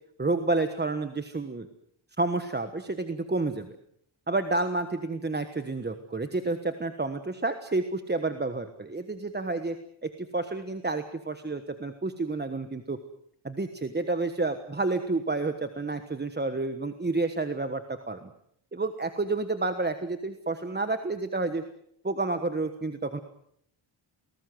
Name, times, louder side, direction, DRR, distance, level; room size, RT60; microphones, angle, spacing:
voice 1, 0.2-1.7 2.2-3.7 4.3-9.8 10.0-13.0 13.4-18.3 18.7-21.6 22.0-23.2, right 3 dB, 20° right, 8 dB, 1.3 m, -30 dB
28.5 x 19.5 x 7.9 m, 0.70 s
wide cardioid pair, 150°, 48 cm